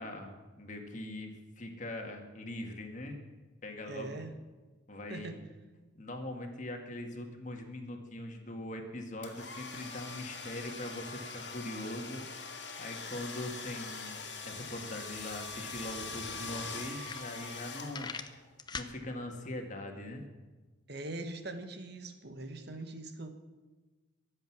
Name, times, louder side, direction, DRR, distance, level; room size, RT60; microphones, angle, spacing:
voice 1, 0.0-3.2 3.6-4.2 4.9-5.4 5.9-12.3 12.8-14.2 14.4-18.1 18.7-20.3, left 1 dB, 40° left, 3 dB, 2.0 m, -41 dB
voice 2, 3.9-4.3 5.1-5.4 20.9-23.3, right 2 dB, 55° right, 7 dB, 1.3 m, -42 dB
sound 1, 9.2-18.4, left 4 dB, 60° left, 2.2 m, -43 dB
sound 2, 17.0-17.6 17.9-18.9, left 5 dB, 20° left, 0.7 m, -41 dB
23.0 x 8.1 x 6.1 m, 1.3 s
head